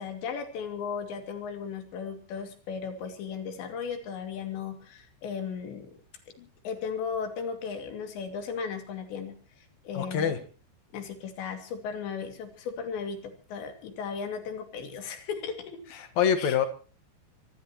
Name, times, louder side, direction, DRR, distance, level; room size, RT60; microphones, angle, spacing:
voice 1, 0.0-5.9 6.4-10.4 10.9-15.8 16.4-16.6, left 6 dB, 80° left, 6 dB, 4.8 m, -36 dB
voice 2, 9.9-10.4 15.9-16.6, left 8 dB, 55° left, 9 dB, 2.2 m, -25 dB
25.5 x 17.5 x 3.0 m, 0.37 s
omnidirectional pair, 5.0 m